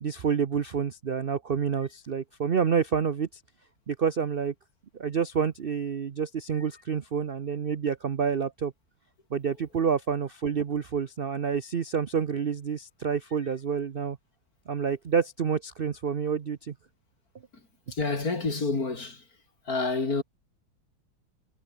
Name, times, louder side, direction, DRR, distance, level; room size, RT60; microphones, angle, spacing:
voice 1, 0.0-3.4 3.9-4.5 4.9-8.7 9.3-14.2 14.7-16.7, right 7 dB, 55° right, 0.6 m, -28 dB
voice 2, 17.5-19.3 19.6-20.2, left 3 dB, 50° left, 4.1 m, -29 dB
omnidirectional pair, 2.1 m